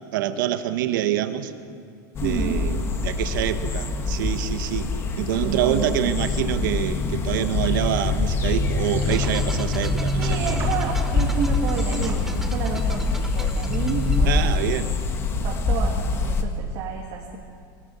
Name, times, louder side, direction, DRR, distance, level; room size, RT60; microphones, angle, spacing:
voice 1, 0.1-1.5 2.2-4.9 5.2-10.4 14.3-14.9, right 11 dB, 75° right, 9 dB, 1.5 m, -26 dB
sound 1, 2.2-16.4, left 3 dB, 20° left, 1.4 m, -24 dB
voice 2, 2.2-2.6 5.4-6.2 10.2-14.7 15.3-17.4, right 6 dB, 40° right, -2 dB, 2.2 m, -30 dB
sound 2, 8.8-9.3 10.2-10.7 11.6-12.2, right 5 dB, 20° right, 4.0 m, -38 dB
sound 3, 9.1-14.8, right 1 dB, 5° right, 0.7 m, -40 dB
23.0 x 19.5 x 7.2 m, 2.4 s
supercardioid pair, 170°, 11 cm